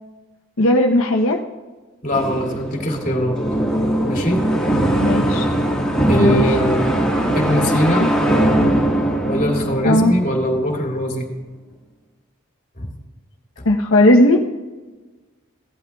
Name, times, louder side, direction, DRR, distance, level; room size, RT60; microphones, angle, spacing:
voice 1, 0.6-1.4 5.0-5.5 6.2-6.4 8.0-8.1 9.8-10.1 13.6-14.4, left 1 dB, 85° left, 0 dB, 0.9 m, -16 dB
voice 2, 2.0-3.4 4.1-4.4 6.1-6.9 7.3-8.1 9.3-11.3 12.8-12.9, equal, 40° left, 0 dB, 2.5 m, -21 dB
sound 1, 2.1-10.9, right 1 dB, 5° left, 1.6 m, -20 dB
17.0 x 12.0 x 2.3 m, 1.3 s
head